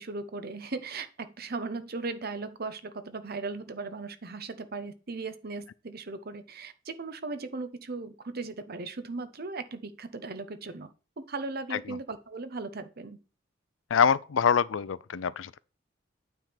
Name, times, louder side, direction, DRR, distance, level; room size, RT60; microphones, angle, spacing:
voice 1, 0.0-10.9 11.2-13.2, right 3 dB, 55° right, 1.0 m, -37 dB
voice 2, 13.9-15.6, left 7 dB, 85° left, 0.5 m, -25 dB
9.1 x 3.7 x 5.8 m
head